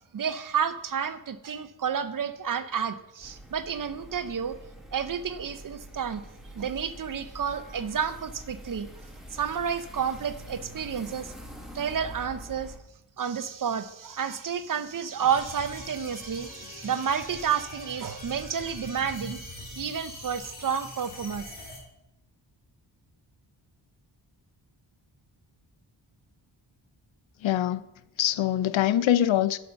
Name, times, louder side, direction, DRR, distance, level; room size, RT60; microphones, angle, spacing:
voice 1, 0.1-4.5 4.9-6.2 6.5-8.9 9.3-11.3 11.7-12.7 13.2-19.4 19.8-21.4, right 7 dB, 45° right, 0.6 m, -30 dB
sound 1, 3.2-12.8, equal, ahead, 1.4 m, -45 dB
sound 2, 15.3-21.8, left 1 dB, 20° left, 2.5 m, -42 dB
voice 2, 27.4-27.8 28.2-29.6, left 11 dB, 85° left, 0.6 m, -23 dB
11.0 x 5.4 x 5.7 m
wide cardioid pair, 155°, 45 cm